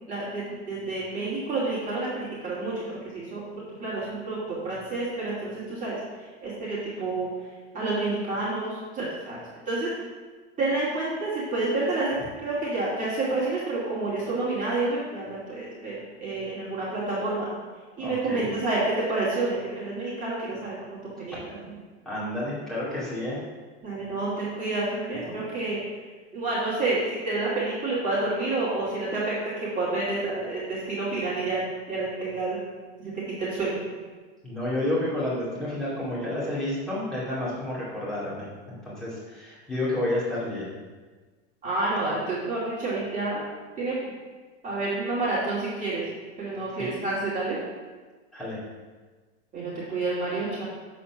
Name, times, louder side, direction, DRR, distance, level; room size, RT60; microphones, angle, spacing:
voice 1, 0.1-7.3 7.7-9.4 9.7-9.9 10.6-17.5 18.0-20.8 21.2-21.7 23.8-25.8 26.3-32.6 33.0-33.8 41.6-43.4 43.8-44.0 44.6-46.1 46.4-47.6 49.5-50.6, right 2 dB, 20° right, -9 dB, 2.4 m, -29 dB
voice 2, 18.0-18.5 22.1-23.4 34.4-40.7 46.8-46.9 48.3-48.6, left 1 dB, ahead, -9 dB, 2.3 m, -30 dB
7.7 x 4.3 x 5.8 m, 1.4 s
supercardioid pair, 130°, 34 cm